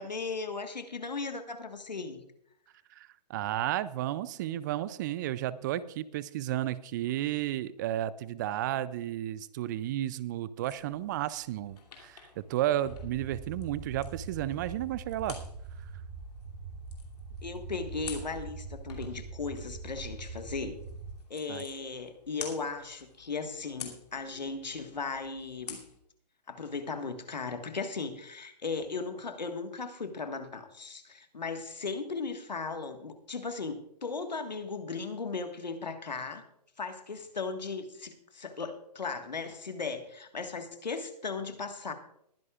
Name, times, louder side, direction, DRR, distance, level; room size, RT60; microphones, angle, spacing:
voice 1, 0.0-2.2 17.4-20.8 21.3-25.8 26.5-36.4 36.8-41.9, left 4 dB, 85° left, 7 dB, 1.6 m, -37 dB
voice 2, 2.9-15.4 21.5-21.6, right 13 dB, 30° right, 18 dB, 0.3 m, -33 dB
sound 1, 10.6-26.0, left 6 dB, 70° left, 2.7 m, -50 dB
sound 2, 12.8-21.1, right 4 dB, 50° right, 2.0 m, -43 dB
21.0 x 11.0 x 2.4 m, 0.73 s
hypercardioid pair, 130°, 21 cm